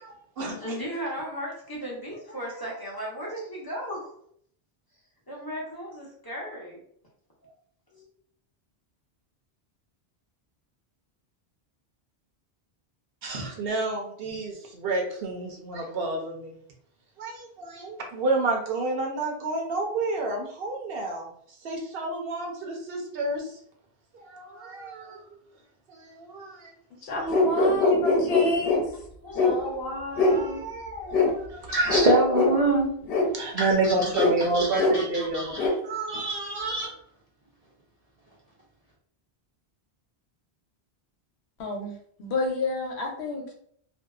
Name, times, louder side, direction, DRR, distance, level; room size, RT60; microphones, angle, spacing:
voice 1, 0.0-0.6 13.2-16.6 17.2-21.3 21.6-23.5 24.1-25.2 25.9-26.7 31.5-31.7 33.3-35.5 35.8-36.8, right 2 dB, 70° right, 1 dB, 0.8 m, -30 dB
voice 2, 0.6-4.1 5.3-6.8 7.4-7.5 7.9-8.1 29.2-31.3, equal, 25° left, -5 dB, 0.6 m, -35 dB
voice 3, 27.0-28.8 41.6-43.5, left 2 dB, 90° left, 1 dB, 0.9 m, -30 dB
sound 1, 27.3-28.8 29.4-29.5 30.2-30.4 31.1-31.3 31.9-32.1 32.3-32.5 33.1-33.2 34.2-34.3 34.8-34.9 35.6-35.7, left 3 dB, 65° left, 0.9 m, -21 dB
voice 4, 31.7-32.9 33.6-34.2 34.5-35.7 36.1-36.9, right 1 dB, 50° right, -3 dB, 0.5 m, -25 dB
2.6 x 2.1 x 2.3 m, 0.64 s
omnidirectional pair, 1.1 m